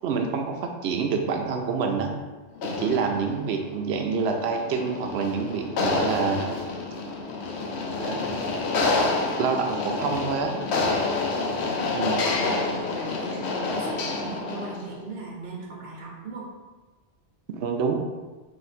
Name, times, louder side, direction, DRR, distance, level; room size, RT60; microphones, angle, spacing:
voice 1, 0.0-2.2 2.6-6.6 8.0-8.2 9.4-10.6 11.9-12.2 17.5-18.0, right 5 dB, 70° right, 3 dB, 0.8 m, -27 dB
sound 1, 2.6-14.9, left 3 dB, 70° left, 0.8 m, -28 dB
voice 2, 11.0-16.5, right 3 dB, 55° right, -3 dB, 1.1 m, -39 dB
3.8 x 2.6 x 4.2 m, 1.3 s
omnidirectional pair, 1.2 m